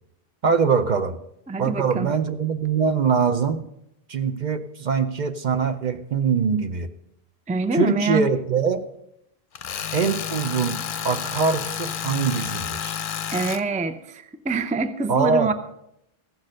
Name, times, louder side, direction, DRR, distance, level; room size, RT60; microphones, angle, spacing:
voice 1, 0.4-1.2 1.6-3.6 4.1-6.9 7.7-8.9 9.9-10.8 11.0-13.0 15.1-15.5, right 5 dB, 50° right, 9 dB, 0.7 m, -23 dB
voice 2, 1.5-2.1 7.5-8.2 13.3-15.5, right 3 dB, 10° right, 10 dB, 0.4 m, -25 dB
Tools, 9.6-13.6, left 8 dB, 60° left, 0.7 m, -30 dB
15.0 x 6.4 x 6.4 m, 0.80 s
omnidirectional pair, 1.0 m